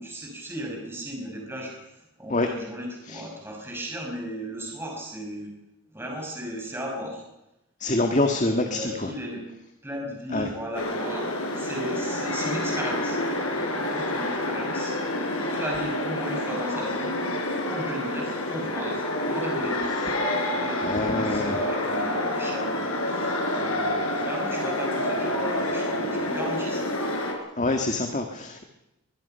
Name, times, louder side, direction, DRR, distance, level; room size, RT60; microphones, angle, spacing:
voice 1, 0.0-5.5 5.9-7.2 8.4-9.4 9.8-13.2 13.5-15.0 15.3-17.1 17.7-19.9 20.5-26.9, equal, 10° right, 0 dB, 5.8 m, -35 dB
voice 2, 7.8-9.1 10.3-10.5 19.9-20.1 20.8-21.6 27.6-28.6, left 2 dB, 35° left, 5 dB, 1.8 m, -26 dB
sound 1, 10.7-27.3, left 1 dB, 80° left, 4.7 m, -28 dB
24.0 x 21.5 x 5.7 m, 0.91 s
head